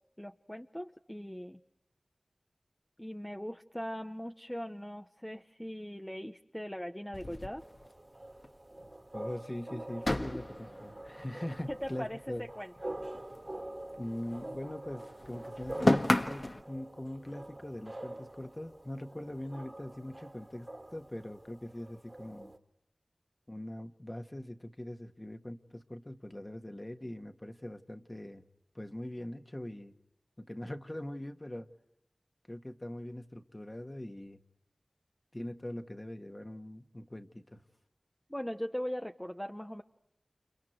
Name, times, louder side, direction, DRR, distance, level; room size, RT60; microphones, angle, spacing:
voice 1, 0.2-1.6 3.0-7.7 11.7-12.9 38.3-39.8, equal, 10° left, 6 dB, 0.9 m, -40 dB
sound 1, 7.1-8.5 8.8-8.9 9.2-9.3 10.0-12.5 12.8-14.6 14.8-16.6, left 1 dB, 45° left, 1.6 m, -33 dB
sound 2, 7.6-22.6, right 1 dB, 35° right, 2.0 m, -46 dB
voice 2, 9.1-12.5 14.0-22.5 23.5-28.4 28.7-29.9 30.4-31.7 32.5-34.4 35.3-37.6, left 1 dB, 30° left, 7 dB, 1.7 m, -42 dB
30.0 x 29.5 x 4.5 m, 0.83 s
wide cardioid pair, 50°, 0 cm